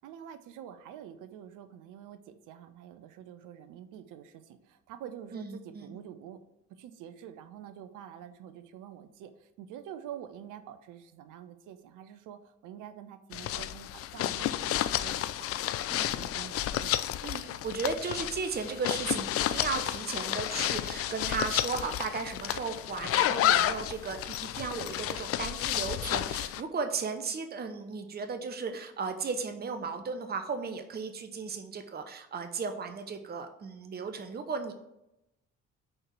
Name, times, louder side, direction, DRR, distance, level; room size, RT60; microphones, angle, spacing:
voice 1, 0.0-6.4 6.7-17.1, right 9 dB, 55° right, 11 dB, 0.7 m, -47 dB
voice 2, 5.3-6.0 17.2-34.7, right 5 dB, 25° right, 7 dB, 0.8 m, -35 dB
sound 1, 13.3-26.6, left 12 dB, 40° left, 0.4 m, -31 dB
6.4 x 4.5 x 5.9 m, 0.87 s
figure-of-eight pair, 50°, 37 cm